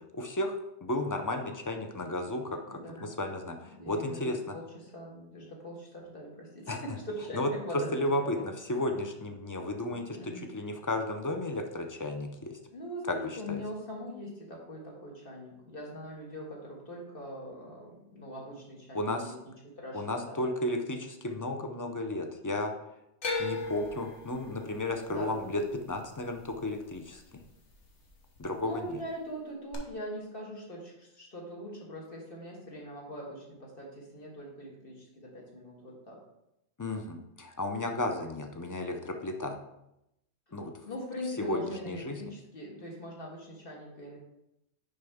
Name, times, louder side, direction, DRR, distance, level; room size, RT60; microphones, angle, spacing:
voice 1, 0.1-4.4 6.7-6.8 7.4-7.5 7.9-10.2 10.5-12.5 13.1-13.2 13.5-13.6 18.9-19.3 19.9-22.7 23.4-25.6 25.9-27.2 28.4-29.0 36.8-39.6 40.5-40.7 41.4-41.6 41.9-42.2, left 1 dB, 25° left, 5 dB, 0.4 m, -33 dB
voice 2, 2.7-3.1 3.7-8.4 9.9-10.5 12.7-20.4 25.1-25.5 28.6-36.2 40.5-40.6 40.8-44.2, equal, 50° left, -2 dB, 1.9 m, -42 dB
sound 1, 23.2-27.4 27.7-28.4 29.7-29.8, left 3 dB, 70° left, 1.4 m, -38 dB
6.5 x 5.6 x 3.5 m, 0.85 s
omnidirectional pair, 1.2 m